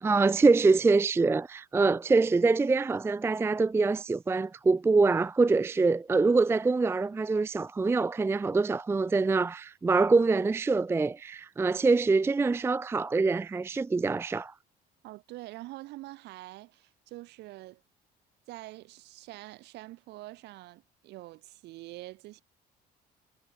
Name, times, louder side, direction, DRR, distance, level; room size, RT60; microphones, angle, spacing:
voice 1, 0.0-14.5, right 3 dB, 15° right, 0.4 m, -25 dB
voice 2, 15.0-17.8 18.5-22.4, right 18 dB, 85° right, 1.9 m, -45 dB
cardioid pair, 110°, 17 cm